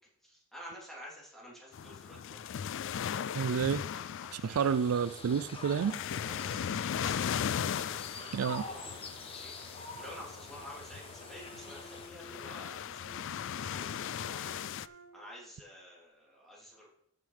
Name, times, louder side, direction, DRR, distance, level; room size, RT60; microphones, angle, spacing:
voice 1, 0.2-2.6 3.8-4.8 6.2-7.2 7.7-8.3 8.7-9.0 9.2-16.9, equal, ahead, 3.5 m, -51 dB
sound 1, 1.7-14.9, left 8 dB, 60° left, 0.3 m, -38 dB
voice 2, 3.4-3.8 4.3-6.0 8.3-8.7, right 7 dB, 85° right, 0.4 m, -30 dB
sound 2, 4.6-12.1, left 2 dB, 25° left, 1.3 m, -46 dB
Bowed string instrument, 11.1-15.4, right 1 dB, 45° right, 1.6 m, -55 dB
14.0 x 6.7 x 3.4 m
head